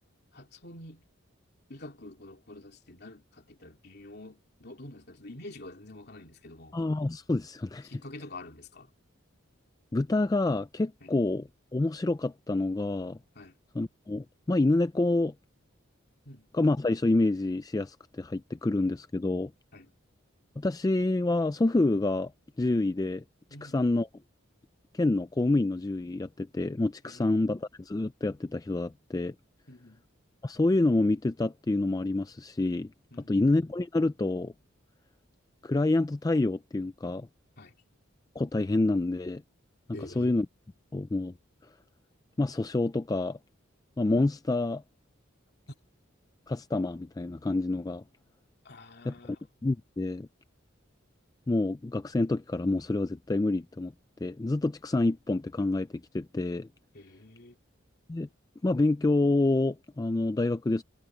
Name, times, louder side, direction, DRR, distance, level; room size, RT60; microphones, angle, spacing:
voice 1, 0.3-1.1 1.7-6.8 7.8-8.9 11.0-11.1 13.3-13.6 16.2-16.5 19.7-19.9 23.5-23.8 27.0-27.4 29.7-30.0 33.1-33.5 37.6-37.7 39.9-40.4 48.6-49.4 56.9-57.6, left 2 dB, 50° left, 3.0 m, -47 dB
voice 2, 6.7-7.9 9.9-11.4 11.7-13.2 13.8-15.3 16.5-19.5 20.6-22.3 22.6-23.2 23.6-24.1 24.9-29.3 30.4-32.9 33.3-34.5 35.6-37.3 38.4-39.4 40.2-40.5 40.9-41.3 42.4-43.4 44.0-44.8 46.5-48.0 49.1-49.2 49.6-50.3 51.5-53.9 54.2-56.7 58.1-58.3 58.6-60.8, left 2 dB, 20° left, 0.3 m, -27 dB
head